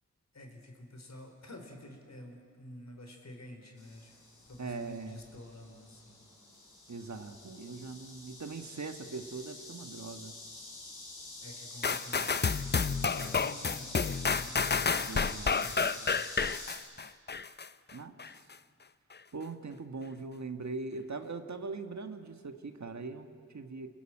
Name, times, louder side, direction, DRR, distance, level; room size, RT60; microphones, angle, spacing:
voice 1, 0.3-6.2 11.4-12.6 12.9-15.2 15.6-16.4, left 1 dB, 60° left, 3 dB, 4.3 m, -50 dB
sound 1, 3.8-16.8, left 2 dB, 80° left, 5.6 m, -47 dB
voice 2, 4.6-5.2 6.9-10.4 15.0-15.7 17.9-18.2 19.3-23.9, right 4 dB, 65° right, 7 dB, 1.7 m, -41 dB
sound 2, 11.8-17.7 18.2-18.3, left 5 dB, 35° left, 0.6 m, -30 dB
28.5 x 19.5 x 9.0 m, 2.2 s
wide cardioid pair, 75°, 30 cm